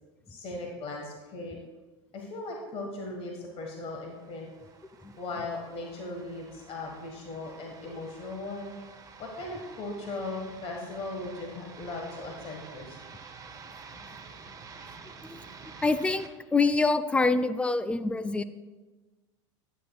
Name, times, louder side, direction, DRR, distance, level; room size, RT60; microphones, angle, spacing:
voice 1, 0.3-1.6 2.1-4.5 5.2-8.7 9.2-13.0, left 2 dB, 40° left, 1 dB, 1.5 m, -38 dB
sound 1, 3.7-16.3, right 5 dB, 20° right, 0.8 m, -49 dB
voice 2, 15.8-18.4, left 3 dB, 10° left, 12 dB, 0.4 m, -25 dB
11.0 x 9.2 x 2.3 m, 1.2 s
hypercardioid pair, 105°, 15 cm